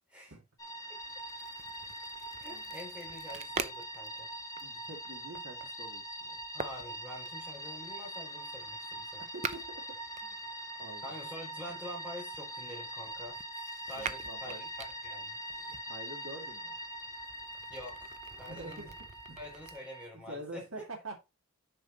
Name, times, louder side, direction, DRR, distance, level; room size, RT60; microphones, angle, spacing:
sound 1, 0.6-20.1, equal, 15° left, 1.3 m, -43 dB
sound 2, 1.0-10.9 11.7-15.8 16.4-19.8, right 5 dB, 35° right, 0.6 m, -46 dB
voice 1, 2.4-4.3 6.5-9.2 11.0-13.4 13.9-15.4 17.7-18.1 18.4-18.9 19.4-20.6, left 1 dB, 5° right, 3.3 m, -46 dB
voice 2, 4.6-6.4 9.3-9.6 10.3-10.4 10.8-11.2 14.0-14.7 15.9-16.8 18.5-19.0 19.3-19.4 20.3-21.2, right 2 dB, 70° right, 2.3 m, -46 dB
6.5 x 5.3 x 4.2 m
head